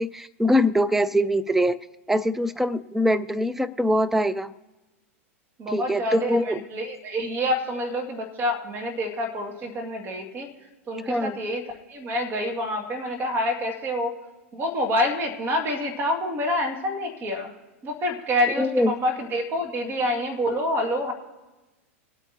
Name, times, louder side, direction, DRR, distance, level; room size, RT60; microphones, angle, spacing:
voice 1, 0.0-1.8 2.1-4.5 5.7-6.6 11.1-11.4 18.6-19.0, equal, 5° right, 14 dB, 0.4 m, -23 dB
voice 2, 5.6-10.5 10.9-11.6 11.9-14.1 14.5-17.5 17.8-21.1, left 1 dB, 30° right, 3 dB, 2.1 m, -27 dB
22.0 x 8.8 x 2.8 m, 1.1 s
hypercardioid pair, 100°, 8 cm